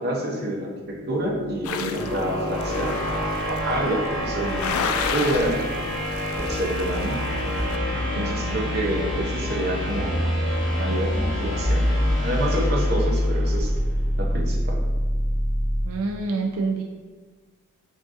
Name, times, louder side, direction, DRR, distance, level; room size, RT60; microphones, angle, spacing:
voice 1, 0.0-5.7 6.4-7.2 7.9-10.3 10.6-13.7 14.2-14.8, right 1 dB, 50° right, -1 dB, 0.7 m, -28 dB
sound 1, 0.8-13.8, equal, ahead, 0.8 m, -30 dB
sound 2, 1.6-7.8, left 6 dB, 85° left, 0.3 m, -33 dB
sound 3, 6.4-16.0, equal, 45° left, 0.9 m, -25 dB
voice 2, 15.8-16.8, right 3 dB, 85° right, 1 dB, 0.4 m, -26 dB
6.0 x 2.6 x 2.5 m, 1.4 s
head